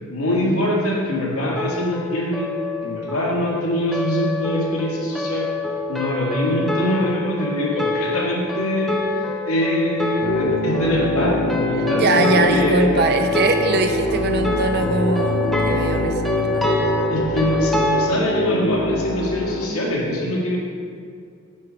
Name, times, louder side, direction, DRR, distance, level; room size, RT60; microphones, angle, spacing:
voice 1, 0.1-2.5 2.8-5.5 5.9-13.0 17.1-20.6, equal, 85° left, -3 dB, 1.8 m, -23 dB
sound 1, 1.6-18.1, left 3 dB, ahead, 0.5 m, -27 dB
sound 2, 10.2-19.7, left 1 dB, 45° left, 0.6 m, -24 dB
voice 2, 11.8-16.7, right 2 dB, 50° right, 6 dB, 0.6 m, -21 dB
8.3 x 4.8 x 4.8 m, 2.3 s
head